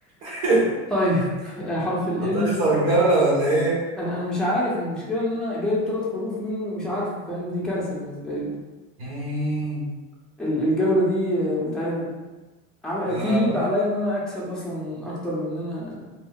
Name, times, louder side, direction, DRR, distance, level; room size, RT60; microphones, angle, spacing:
voice 1, 0.2-0.7 2.3-3.8 9.0-9.8 13.1-13.5, right 2 dB, 60° right, -6 dB, 1.2 m, -22 dB
voice 2, 0.9-2.6 4.0-8.5 10.4-12.1 12.8-16.0, left 1 dB, ahead, -7 dB, 0.8 m, -25 dB
2.7 x 2.0 x 3.6 m, 1.2 s
supercardioid pair, 125°, 37 cm